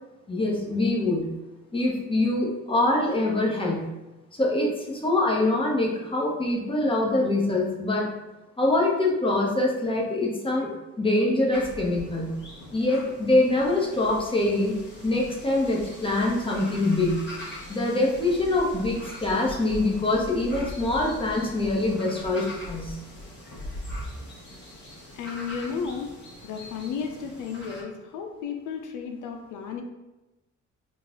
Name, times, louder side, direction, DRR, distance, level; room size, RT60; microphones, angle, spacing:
voice 1, 0.3-1.3 1.7-3.9 4.4-8.1 8.6-12.4 12.7-14.8 15.0-17.3 17.7-23.0, left 2 dB, 15° left, -3 dB, 1.1 m, -24 dB
sound 1, 11.5-27.8, left 1 dB, 35° left, 1.5 m, -41 dB
voice 2, 25.1-26.1 26.4-29.8, left 6 dB, 85° left, 4 dB, 0.5 m, -33 dB
4.0 x 2.4 x 3.7 m, 1.0 s
cardioid pair, 90°, 30 cm